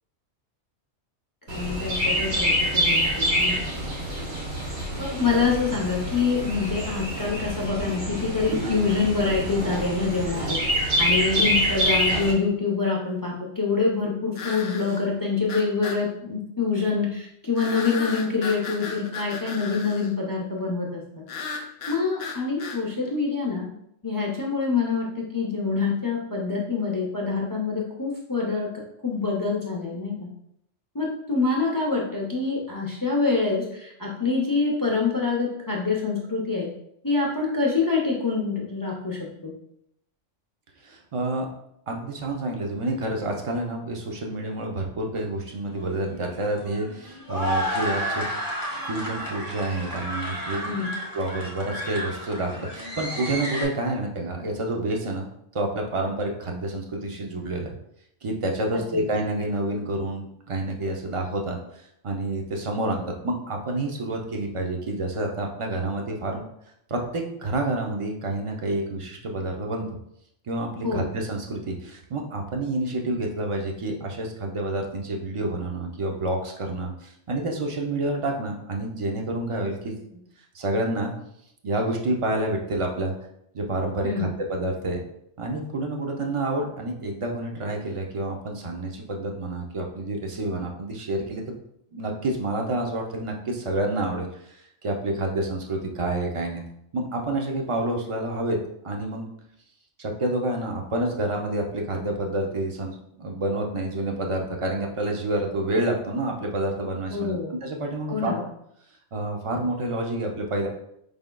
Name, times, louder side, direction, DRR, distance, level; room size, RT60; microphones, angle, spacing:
voice 1, 1.5-3.7 5.0-21.2 21.9-23.7 24.0-28.7 29.0-30.3 30.9-36.7 37.0-39.5 50.6-50.9 58.9-59.0 70.8-71.1 84.0-84.3 107.1-107.5 108.1-108.4, left 4 dB, 30° left, -3 dB, 0.4 m, -26 dB
Chirp tweet, 1.5-12.3, equal, 65° right, 1.4 m, -26 dB
sound 1, 14.4-15.0 15.5-16.0 17.6-20.1 21.3-22.8, left 4 dB, 65° left, 0.7 m, -35 dB
voice 2, 40.8-41.5 41.9-48.2 48.9-50.7 51.1-55.3 55.5-57.7 58.2-61.6 62.0-66.4 66.9-69.9 70.5-80.2 80.5-81.1 81.6-83.1 83.5-85.0 85.4-91.5 91.9-96.6 96.9-99.3 100.0-108.4 109.1-110.7, right 2 dB, 45° right, 1 dB, 0.4 m, -28 dB
sound 2, 45.7-53.6, equal, 20° right, 0.9 m, -32 dB
4.9 x 3.5 x 2.2 m, 0.75 s
omnidirectional pair, 1.2 m